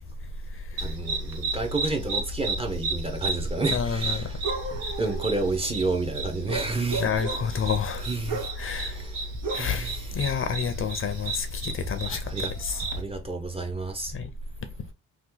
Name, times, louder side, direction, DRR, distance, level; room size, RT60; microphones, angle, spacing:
voice 1, 0.8-4.4 5.0-7.0 8.1-9.1 9.5-10.0 12.1-12.5 12.9-14.1, right 3 dB, 20° right, 0.7 m, -30 dB
sound 1, 0.8-13.0, right 3 dB, 80° right, 1.1 m, -33 dB
voice 2, 3.7-4.3 7.0-8.0 8.6-9.0 9.5-12.3 12.6-12.8 14.1-14.3, left 6 dB, 40° left, 0.5 m, -29 dB
2.9 x 2.3 x 3.7 m
cardioid pair, 130°, 32 cm